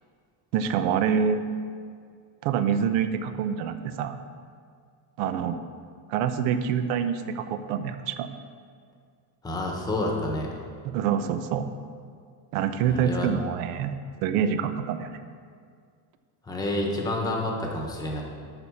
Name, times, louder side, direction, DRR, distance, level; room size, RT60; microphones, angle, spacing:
voice 1, 0.5-1.4 2.4-4.2 5.2-5.6 6.1-8.3 10.8-11.7 12.5-13.9 14.2-15.1, right 7 dB, 80° right, 9 dB, 0.9 m, -26 dB
voice 2, 9.4-10.5 12.8-13.3 16.4-18.2, left 1 dB, 10° left, 0 dB, 1.0 m, -29 dB
11.0 x 4.4 x 7.1 m, 2.1 s
cardioid pair, 175°, 47 cm